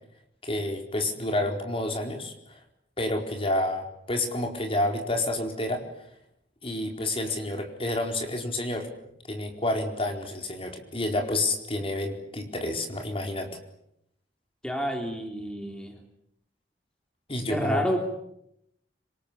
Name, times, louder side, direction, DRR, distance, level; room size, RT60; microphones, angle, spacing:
voice 1, 0.4-2.6 3.0-5.8 6.6-8.9 9.3-13.5 17.3-17.9, left 1 dB, 30° left, 4 dB, 4.5 m, -29 dB
voice 2, 14.6-16.0 17.5-18.0, equal, 5° left, 3 dB, 3.3 m, -29 dB
26.5 x 25.5 x 8.7 m, 0.78 s
head